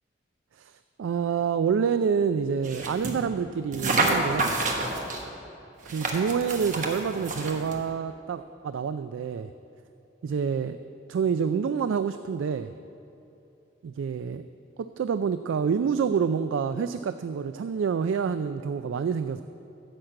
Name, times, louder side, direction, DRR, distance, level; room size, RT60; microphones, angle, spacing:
voice 1, 1.0-4.5 5.9-9.5 10.2-10.8 11.1-12.7 13.8-14.4 14.8-19.4, right 6 dB, 85° right, 11 dB, 0.3 m, -27 dB
sound 1, 2.6-3.2 3.7-5.2 5.8-7.8, right 2 dB, 40° right, 1.1 m, -28 dB
10.5 x 6.5 x 7.5 m, 2.8 s
head